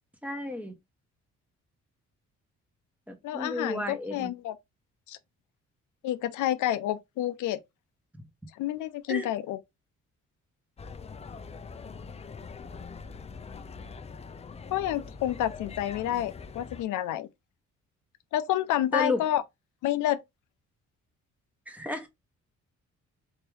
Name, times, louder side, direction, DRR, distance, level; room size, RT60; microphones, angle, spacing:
voice 1, 0.2-0.7 3.1-4.3 9.1-9.3 18.9-19.2 21.7-22.1, left 2 dB, 5° right, 0.9 m, -32 dB
voice 2, 3.2-4.5 5.1-5.2 6.0-7.6 8.6-9.6 14.7-17.3 18.3-19.4 19.8-20.2, left 12 dB, 80° left, 0.5 m, -29 dB
sound 1, 10.8-16.8, left 5 dB, 20° left, 0.4 m, -43 dB
3.5 x 2.8 x 3.2 m
cardioid pair, 90°, 30 cm